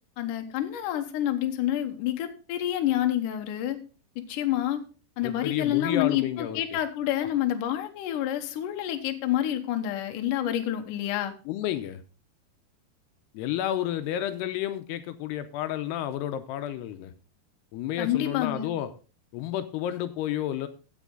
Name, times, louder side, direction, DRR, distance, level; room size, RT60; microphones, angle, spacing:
voice 1, 0.2-3.8 4.2-4.8 5.2-11.3 18.0-18.7, left 12 dB, 65° left, 6 dB, 2.2 m, -28 dB
voice 2, 5.2-6.6 11.5-12.0 13.3-17.1 17.7-18.9 19.3-20.7, left 12 dB, 85° left, 10 dB, 2.7 m, -31 dB
15.5 x 6.3 x 3.8 m, 0.34 s
omnidirectional pair, 4.8 m